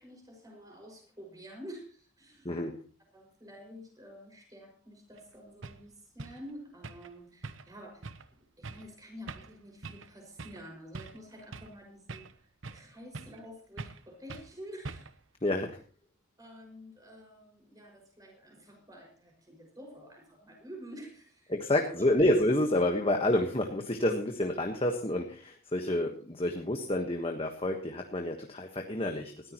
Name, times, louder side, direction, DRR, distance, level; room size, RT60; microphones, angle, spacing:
voice 1, 0.0-2.6 3.1-15.1 15.4-15.5 16.4-22.1, equal, 20° right, 1 dB, 5.8 m, -49 dB
sound 1, 5.2-5.3 5.6-5.8 6.2-6.4 6.8-7.1 7.4-7.8 8.0-8.3 8.6-8.9 9.3-9.6 9.8-10.1 10.4-10.6 10.9-11.8 12.1-12.9 13.1-13.5 13.8-14.0 14.3-14.5 14.9-15.2, right 3 dB, 70° right, 0.9 m, -43 dB
voice 2, 15.4-15.8 21.5-29.5, left 1 dB, 25° left, 3 dB, 1.3 m, -29 dB
19.5 x 14.0 x 3.0 m, 0.39 s
head